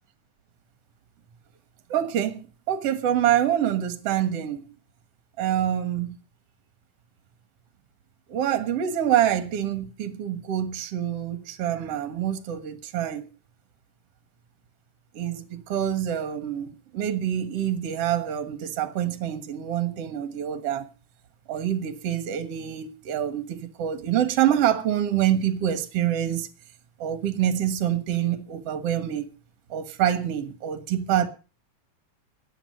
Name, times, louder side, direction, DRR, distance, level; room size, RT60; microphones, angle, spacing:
voice 1, 1.9-4.7 5.4-6.2 8.3-13.3 15.1-20.9 21.5-26.5 27.0-29.3 29.7-31.3, right 10 dB, 55° right, 2.3 m, -26 dB
14.5 x 10.5 x 6.6 m
omnidirectional pair, 3.5 m